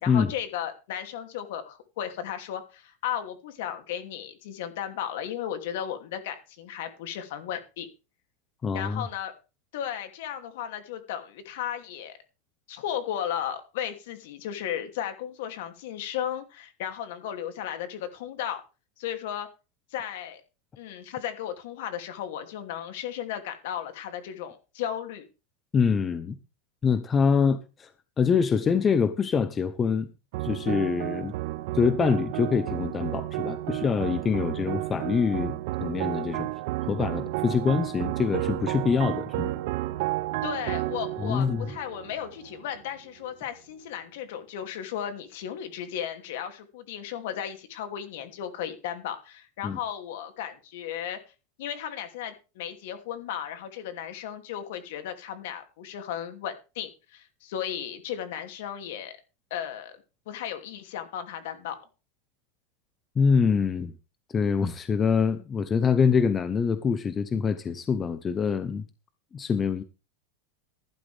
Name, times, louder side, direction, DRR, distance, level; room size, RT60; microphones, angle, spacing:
voice 1, 0.0-7.9 8.7-9.3 9.7-12.2 12.7-18.6 19.0-19.5 19.9-20.4 20.8-25.3 40.4-51.2 51.6-59.1 59.5-60.0 60.3-61.8, left 10 dB, 60° left, 7 dB, 2.8 m, -35 dB
voice 2, 8.6-9.0 25.7-26.4 26.8-27.9 28.2-30.1 30.4-31.3 31.7-36.5 36.8-39.5 41.2-41.7 49.6-49.8 63.2-63.9 64.3-68.8 69.3-69.8, left 6 dB, 15° left, 12 dB, 0.8 m, -25 dB
sound 1, 30.3-42.8, right 17 dB, 50° right, 0.7 m, -32 dB
15.0 x 11.5 x 3.5 m, 0.31 s
supercardioid pair, 170°, 0 cm